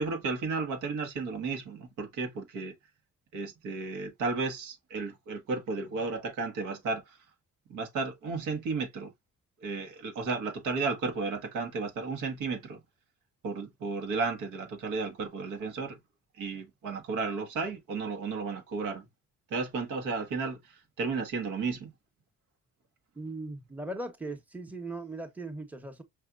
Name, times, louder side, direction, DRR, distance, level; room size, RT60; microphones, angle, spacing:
voice 1, 0.0-2.7 3.3-7.0 7.7-9.1 9.6-12.8 13.4-16.0 16.4-19.0 19.5-20.6 21.0-21.9, right 4 dB, 85° right, 1.4 m, -33 dB
voice 2, 23.2-26.0, right 2 dB, 5° right, 0.9 m, -39 dB
5.3 x 2.8 x 2.4 m
cardioid pair, 90°, 30 cm